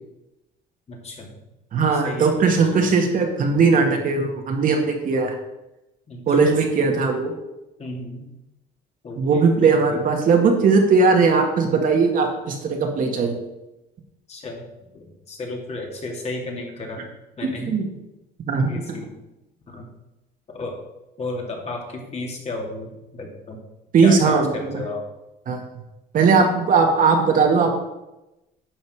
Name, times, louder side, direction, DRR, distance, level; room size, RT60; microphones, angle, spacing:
voice 1, 0.9-1.4 1.9-3.0 6.1-6.6 7.8-8.3 9.0-10.0 14.3-14.7 14.9-17.1 17.4-17.8 18.6-19.1 19.7-19.9 20.5-20.7 21.2-23.6 24.0-25.0, left 2 dB, 40° left, 0 dB, 2.5 m, -33 dB
voice 2, 1.7-5.3 6.3-7.3 9.2-13.4 17.4-17.9 18.5-18.7 23.9-24.5 25.5-25.6 26.1-27.7, right 4 dB, 55° right, 2 dB, 2.0 m, -18 dB
11.0 x 6.4 x 5.0 m, 0.96 s
cardioid pair, 110°, 17 cm